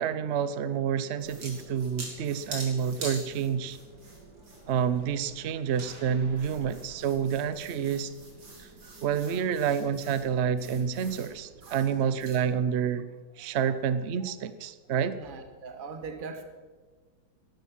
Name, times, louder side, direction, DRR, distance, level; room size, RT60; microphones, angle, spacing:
voice 1, 0.0-3.8 4.7-8.1 9.0-13.0 13.4-15.2, right 7 dB, 65° right, 14 dB, 0.6 m, -28 dB
sound 1, 1.2-12.4, right 2 dB, 80° right, 3.9 m, -45 dB
voice 2, 8.8-9.5 11.6-12.0 14.2-14.3 15.2-16.4, right 4 dB, 30° right, 6 dB, 1.3 m, -43 dB
15.0 x 11.5 x 6.0 m, 1.4 s
omnidirectional pair, 2.0 m